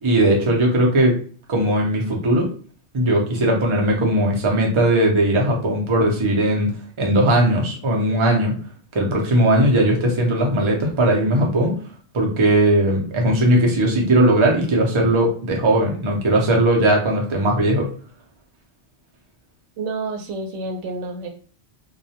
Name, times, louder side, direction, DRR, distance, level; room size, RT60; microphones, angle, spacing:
voice 1, 0.0-1.2 1.5-2.5 2.9-6.7 7.0-8.5 8.9-11.7 12.1-17.9, right 1 dB, 35° right, -1 dB, 0.6 m, -18 dB
voice 2, 19.8-21.3, right 3 dB, 90° right, 4 dB, 0.9 m, -29 dB
2.3 x 2.1 x 2.8 m, 0.42 s
omnidirectional pair, 1.2 m